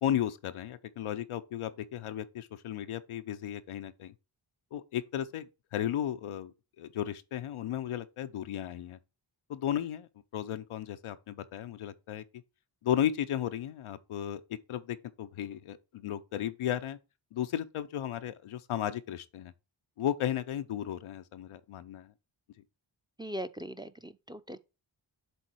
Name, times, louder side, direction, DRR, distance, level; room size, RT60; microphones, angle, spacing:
voice 1, 0.0-4.1 4.7-9.0 9.5-12.2 12.8-17.0 17.3-19.5 20.0-22.1, left 10 dB, 90° left, 0.7 m, -34 dB
voice 2, 23.2-24.6, equal, 10° right, 0.6 m, -40 dB
7.1 x 3.8 x 4.5 m
cardioid pair, 45°, 49 cm